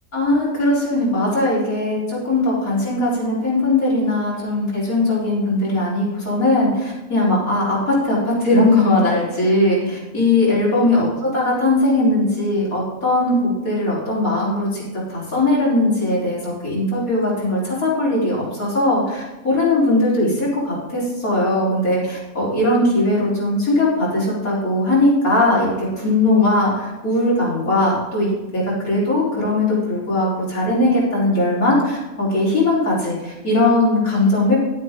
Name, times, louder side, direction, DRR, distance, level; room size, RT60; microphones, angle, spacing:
voice 1, 0.1-14.8 15.1-34.6, left 2 dB, 70° left, -7 dB, 4.9 m, -19 dB
11.0 x 9.0 x 3.8 m, 1.1 s
omnidirectional pair, 1.6 m